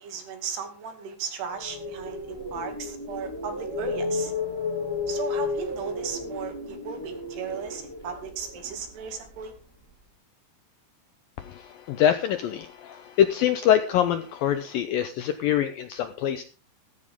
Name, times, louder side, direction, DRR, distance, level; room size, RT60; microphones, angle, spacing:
voice 1, 0.0-4.3 5.1-9.5, right 6 dB, 65° right, 6 dB, 4.3 m, -36 dB
sound 1, 1.5-9.6, left 4 dB, 10° left, 1.5 m, -33 dB
voice 2, 11.4-16.4, left 10 dB, 80° left, 9 dB, 2.1 m, -24 dB
14.5 x 14.0 x 3.6 m, 0.35 s
omnidirectional pair, 5.1 m